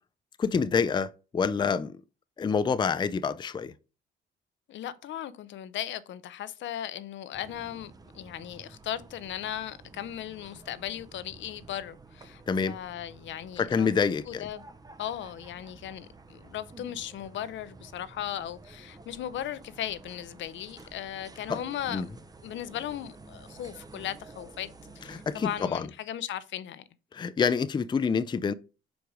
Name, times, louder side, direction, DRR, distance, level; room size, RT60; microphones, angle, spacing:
voice 1, 0.4-1.9 2.4-3.7 12.5-12.8 13.6-14.4 21.5-21.6 21.9-22.1 25.1-25.9 27.1-28.5, left 5 dB, 25° left, 0.4 m, -27 dB
voice 2, 4.7-13.9 14.3-14.6 15.0-22.1 22.4-24.7 25.0-26.8, left 11 dB, 70° left, 0.6 m, -37 dB
sound 1, 7.3-25.7, right 3 dB, 20° right, 0.6 m, -51 dB
5.1 x 4.7 x 4.8 m
cardioid pair, 90°, 20 cm